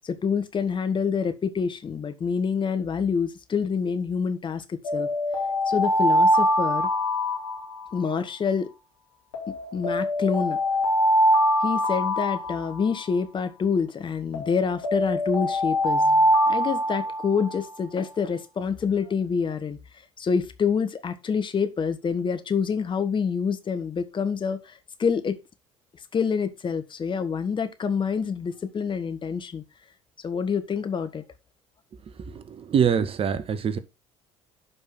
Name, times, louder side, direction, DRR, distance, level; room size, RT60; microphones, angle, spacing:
voice 1, 0.0-5.1 5.7-6.9 7.9-8.7 9.7-10.6 11.6-19.8 20.2-25.4 26.1-29.6 30.2-31.2, left 6 dB, 35° left, 1.5 m, -27 dB
Alarm, 4.8-8.2 9.3-13.2 14.3-17.6, equal, 80° left, 4.2 m, -23 dB
voice 2, 32.3-33.8, right 7 dB, 40° right, 1.2 m, -24 dB
11.0 x 5.3 x 3.9 m
figure-of-eight pair, 60°, 15 cm